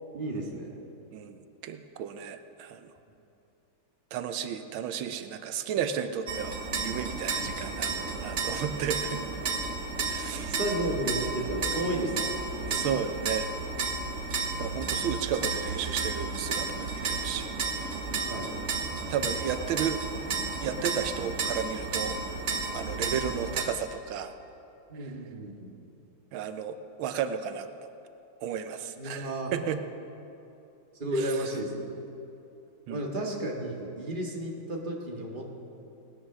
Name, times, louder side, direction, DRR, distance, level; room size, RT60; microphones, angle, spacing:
voice 1, 0.1-0.7 7.3-7.4 10.6-12.4 12.6-12.9 18.3-18.5 24.9-25.7 29.0-29.5 31.0-31.9 32.9-35.5, right 1 dB, 25° right, -1 dB, 1.7 m, -33 dB
voice 2, 1.1-2.9 4.1-9.2 10.1-10.6 12.7-13.5 14.5-17.5 17.8-18.0 19.1-20.0 20.6-22.2 22.7-24.3 25.0-25.1 26.3-27.9 28.4-29.8 32.9-33.0, right 8 dB, 90° right, 9 dB, 1.5 m, -33 dB
sound 1, 6.3-23.6, right 4 dB, 45° right, 1.2 m, -32 dB
18.5 x 10.0 x 6.1 m, 2.9 s
omnidirectional pair, 2.1 m